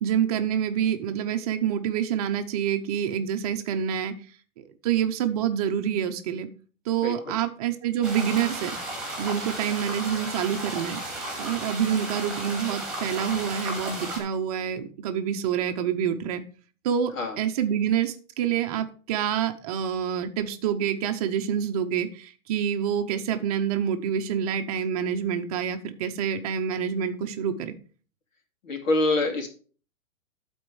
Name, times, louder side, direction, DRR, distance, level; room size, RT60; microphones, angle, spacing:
voice 1, 0.0-4.1 4.6-6.5 6.9-8.8 9.2-11.0 11.4-16.4 16.8-27.7, right 8 dB, 30° right, 7 dB, 0.7 m, -27 dB
voice 2, 7.0-7.4 17.2-17.3 28.7-29.5, left 2 dB, 75° left, 3 dB, 2.8 m, -25 dB
sound 1, 8.0-14.2, right 1 dB, ahead, 2.3 m, -34 dB
12.0 x 4.4 x 4.7 m, 0.40 s
hypercardioid pair, 155°, 40 cm